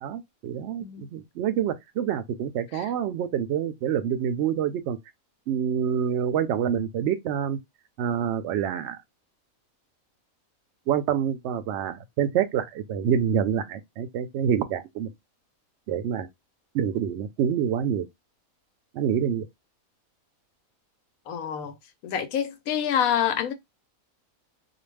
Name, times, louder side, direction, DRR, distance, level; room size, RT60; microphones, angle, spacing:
voice 1, 0.0-5.0 5.5-7.6 8.0-9.0 10.9-15.1 15.9-16.3 16.7-18.0 18.9-19.5, right 8 dB, 65° right, 0.7 m, -27 dB
voice 2, 21.3-21.8 22.0-23.5, left 9 dB, 90° left, 1.1 m, -27 dB
2.5 x 2.3 x 3.2 m
omnidirectional pair, 1.5 m